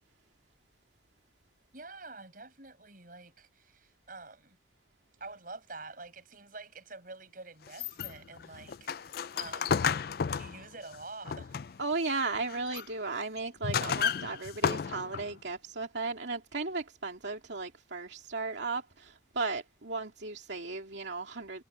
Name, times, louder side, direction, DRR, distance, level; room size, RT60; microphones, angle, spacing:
voice 1, 1.7-4.6 5.2-9.8 10.3-11.6, right 3 dB, 50° right, 7.1 m, -47 dB
sound 1, 7.7-11.9 12.3-12.9 13.4-15.3, left 6 dB, 55° left, 0.4 m, -33 dB
voice 2, 11.8-21.6, right 3 dB, 75° right, 2.4 m, -35 dB
head